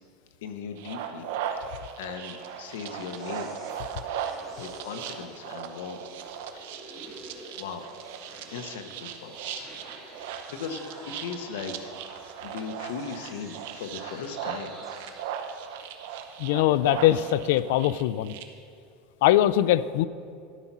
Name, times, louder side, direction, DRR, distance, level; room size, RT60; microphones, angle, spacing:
voice 1, 0.4-1.3 2.0-3.6 4.6-6.0 6.5-6.9 7.5-7.8 8.5-9.8 10.0-10.8 11.1-11.9 12.4-14.8, left 6 dB, 90° left, 7 dB, 1.0 m, -38 dB
sound 1, 0.8-18.4, right 8 dB, 70° right, 0.8 m, -38 dB
sound 2, 2.1-16.2, right 2 dB, 25° right, 2.9 m, -49 dB
voice 2, 16.4-18.3 19.2-20.1, left 13 dB, 70° left, 17 dB, 0.3 m, -22 dB
12.5 x 5.5 x 6.0 m, 2.4 s
supercardioid pair, 155°, 0 cm